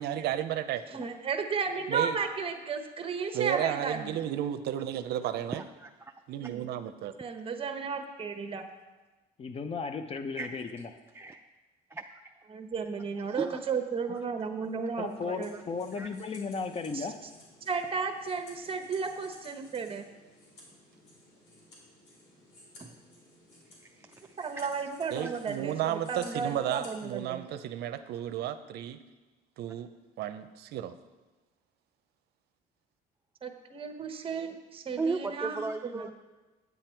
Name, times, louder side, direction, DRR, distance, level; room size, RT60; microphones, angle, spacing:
voice 1, 0.0-0.8 1.9-2.2 3.3-5.6 6.3-7.1 25.1-29.0 29.6-29.9 30.2-30.9, right 11 dB, 75° right, 0.6 m, -33 dB
voice 2, 0.9-4.2 7.2-8.6 12.5-15.6 16.9-17.1 17.6-20.0 22.8-22.9 24.4-27.4 33.4-35.6 35.9-36.1, right 5 dB, 35° right, 1.0 m, -34 dB
voice 3, 5.5-6.1 10.4-10.5 11.1-11.4 13.3-13.6 15.5-15.6 16.0-16.1 23.8-24.7 25.2-25.4 35.0-36.1, right 3 dB, 15° right, 0.3 m, -36 dB
voice 4, 9.4-10.9 15.0-17.3, left 4 dB, 35° left, 0.6 m, -35 dB
sound 1, 14.6-26.9, left 1 dB, 80° left, 2.9 m, -56 dB
9.4 x 7.8 x 4.5 m
cardioid pair, 110°, 17 cm